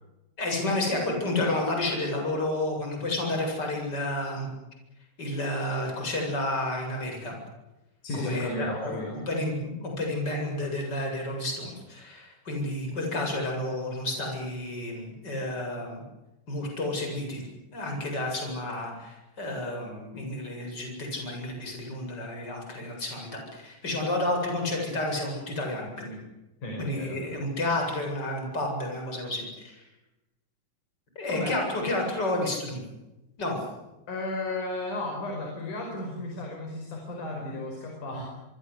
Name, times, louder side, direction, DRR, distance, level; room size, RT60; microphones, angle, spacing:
voice 1, 0.4-4.5 5.2-7.3 8.1-16.0 16.5-17.4 17.7-26.2 26.8-29.8 31.1-32.8 33.4-33.6, left 1 dB, 20° left, 2 dB, 8.2 m, -31 dB
voice 2, 8.0-9.2 26.6-27.2 31.3-31.6 34.1-38.3, left 2 dB, 40° left, 1 dB, 6.5 m, -34 dB
27.0 x 24.0 x 8.4 m, 1.0 s
omnidirectional pair, 5.6 m